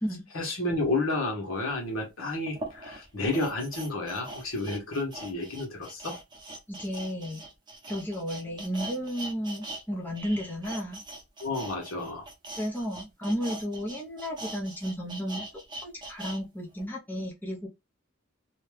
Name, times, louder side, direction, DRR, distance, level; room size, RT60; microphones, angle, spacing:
voice 1, 0.3-6.2 11.4-12.2, left 2 dB, 80° left, 1.2 m, -31 dB
sound 1, 1.7-1.8 2.5-9.8 10.1-16.4 16.8-16.9, right 1 dB, 20° right, 0.8 m, -42 dB
voice 2, 6.7-7.4 7.9-11.0 12.6-15.4 15.8-17.7, equal, 10° left, 0.7 m, -33 dB
2.8 x 2.3 x 3.3 m
head